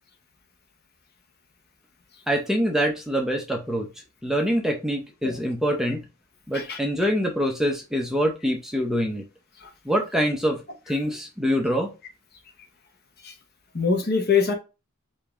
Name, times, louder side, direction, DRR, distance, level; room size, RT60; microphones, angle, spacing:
voice 1, 2.3-3.9 4.2-6.0 6.5-9.2 9.8-10.6 10.9-11.9, equal, ahead, 0.7 m, -25 dB
voice 2, 13.7-14.5, left 5 dB, 45° left, 1.1 m, -23 dB
5.0 x 2.8 x 3.5 m
head